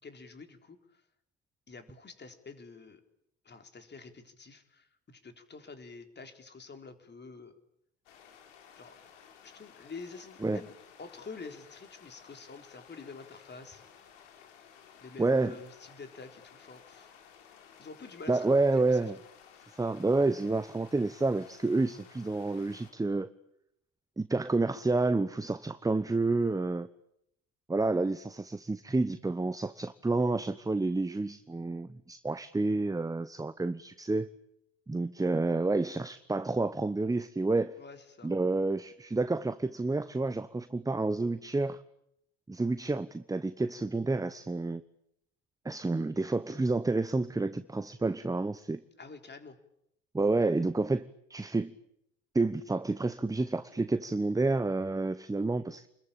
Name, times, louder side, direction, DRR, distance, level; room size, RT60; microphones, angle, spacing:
voice 1, 0.0-1.0 1.7-3.0 3.4-7.5 8.8-9.0 9.4-10.7 11.0-13.8 15.0-17.1 17.8-19.1 37.8-38.3 49.0-49.6, left 4 dB, 30° left, 4.0 m, -48 dB
sound 1, 8.1-22.9, left 8 dB, 75° left, 4.1 m, -56 dB
voice 2, 15.2-15.6 18.3-19.2 19.7-23.3 24.2-26.9 27.7-34.3 34.9-37.7 38.2-41.8 42.5-44.8 45.6-48.8 50.1-51.0 51.3-51.7 52.3-55.9, right 3 dB, 10° right, 1.0 m, -29 dB
29.0 x 22.0 x 8.8 m
hypercardioid pair, 65°, 36 cm